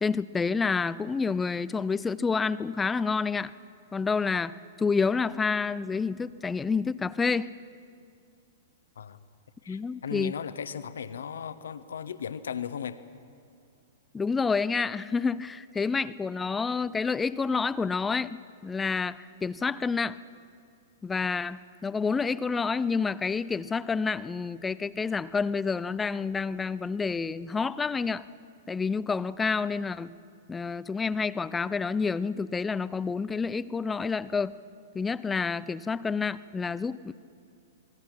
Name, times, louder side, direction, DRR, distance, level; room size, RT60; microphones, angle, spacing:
voice 1, 0.0-3.5 3.9-7.5 9.7-10.3 14.1-20.2 21.0-28.3 28.7-30.1 30.5-34.5 34.9-37.1, left 5 dB, 15° left, 18 dB, 0.5 m, -29 dB
voice 2, 9.6-13.0 15.8-15.9, left 7 dB, 70° left, 13 dB, 1.0 m, -37 dB
27.0 x 20.5 x 6.0 m, 2.4 s
figure-of-eight pair, 105°, 0 cm